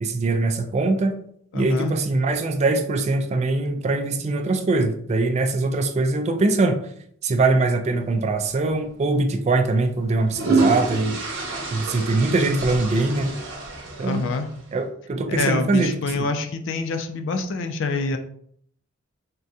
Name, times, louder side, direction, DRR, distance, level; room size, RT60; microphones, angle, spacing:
voice 1, 0.0-1.1 1.5-6.8 7.2-11.2 11.7-13.3 14.0-14.3 14.7-16.2, right 3 dB, 35° right, 6 dB, 0.3 m, -22 dB
voice 2, 1.5-1.9 14.0-14.5 15.3-18.2, left 3 dB, 65° left, 7 dB, 0.4 m, -26 dB
sound 1, 8.6-8.8 10.0-14.6, right 3 dB, 65° right, 0.8 m, -27 dB
3.6 x 2.2 x 2.7 m, 0.65 s
head